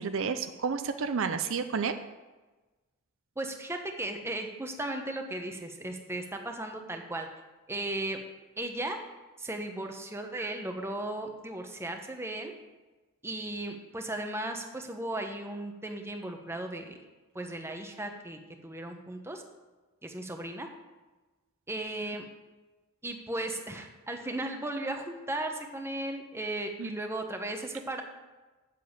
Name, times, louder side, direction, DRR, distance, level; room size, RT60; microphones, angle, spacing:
voice 1, 0.0-1.9 26.8-27.0, right 5 dB, 65° right, 9 dB, 0.5 m, -31 dB
voice 2, 3.4-7.3 7.7-8.2 8.6-9.0 9.4-12.5 13.2-17.0 17.3-19.4 20.0-20.7 21.7-22.2 23.0-28.0, right 1 dB, 10° right, 4 dB, 1.0 m, -36 dB
7.5 x 7.0 x 8.1 m, 1.2 s
head